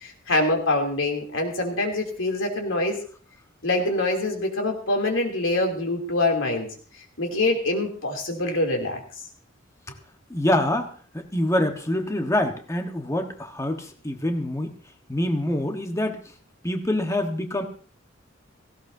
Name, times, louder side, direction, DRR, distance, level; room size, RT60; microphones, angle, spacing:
voice 1, 0.0-3.0 3.6-6.7 7.2-9.0, left 2 dB, 90° left, 2 dB, 3.0 m, -25 dB
voice 2, 10.3-10.9 11.1-14.7 15.1-16.2 16.6-17.6, left 1 dB, 15° left, 4 dB, 1.3 m, -25 dB
17.0 x 16.0 x 2.7 m, 0.42 s
head